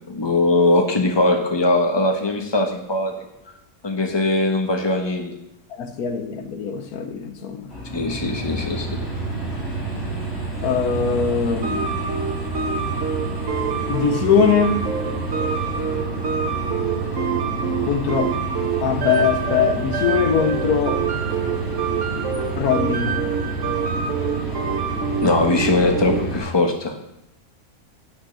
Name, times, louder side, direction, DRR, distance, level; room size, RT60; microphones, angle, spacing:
voice 1, 0.1-3.1 3.8-5.4 7.9-9.0 25.2-26.9, left 2 dB, 20° left, 1.3 m, -20 dB
voice 2, 5.7-7.7 10.6-11.9 13.9-14.9 17.8-18.4 18.8-21.1 22.6-23.2, left 7 dB, 80° left, 1.3 m, -21 dB
sound 1, 7.7-26.4, right 2 dB, 50° left, 3.5 m, -29 dB
sound 2, 11.6-26.4, right 6 dB, 60° right, 1.3 m, -27 dB
9.6 x 6.4 x 8.1 m
omnidirectional pair, 1.6 m